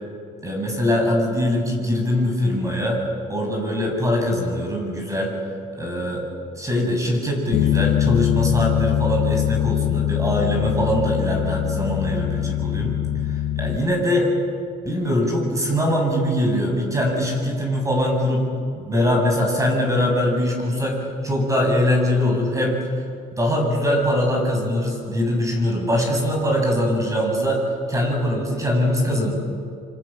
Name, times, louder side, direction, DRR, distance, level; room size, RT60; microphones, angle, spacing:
voice 1, 0.4-3.0 3.3-5.3 5.7-6.2 6.6-13.0 13.3-14.3 14.8-18.5 18.8-21.0 21.2-22.8 23.3-27.6 27.9-29.3, left 1 dB, 20° right, 1 dB, 7.8 m, -22 dB
Bass guitar, 7.5-13.8, left 12 dB, 80° left, 0.6 m, -22 dB
27.5 x 26.0 x 7.5 m, 2.4 s
cardioid pair, 110°, 17 cm